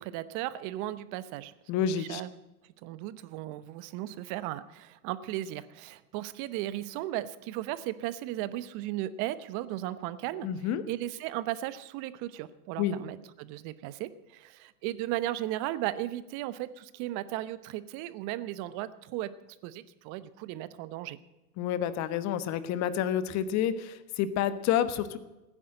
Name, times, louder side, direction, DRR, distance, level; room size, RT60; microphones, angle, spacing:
voice 1, 0.0-2.3 2.8-10.5 10.9-19.3 19.6-21.2, right 14 dB, 40° right, 15 dB, 1.0 m, -36 dB
voice 2, 1.7-2.2 10.4-10.8 12.8-13.0 21.6-25.2, left 9 dB, 35° left, 13 dB, 1.3 m, -29 dB
16.0 x 10.0 x 7.8 m, 1.0 s
hypercardioid pair, 115°, 46 cm